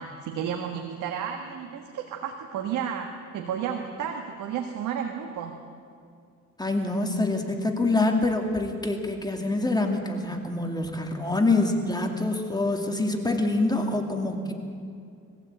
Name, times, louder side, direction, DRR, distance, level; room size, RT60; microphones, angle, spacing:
voice 1, 0.0-5.6, right 8 dB, 90° right, 4 dB, 1.5 m, -32 dB
voice 2, 6.6-14.5, left 2 dB, 15° left, 3 dB, 2.5 m, -25 dB
21.5 x 15.0 x 8.7 m, 2.3 s
cardioid pair, 90°, 30 cm